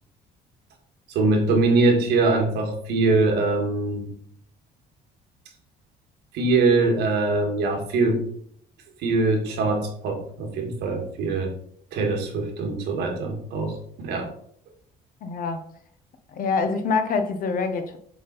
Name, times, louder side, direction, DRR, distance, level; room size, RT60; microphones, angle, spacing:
voice 1, 1.1-4.1 6.3-8.2 9.0-11.5 11.9-14.3, right 3 dB, 80° right, 1.8 m, -23 dB
voice 2, 15.2-15.6 16.3-18.0, left 4 dB, 55° left, 1.0 m, -25 dB
7.3 x 3.9 x 4.0 m
cardioid pair, 110°, 17 cm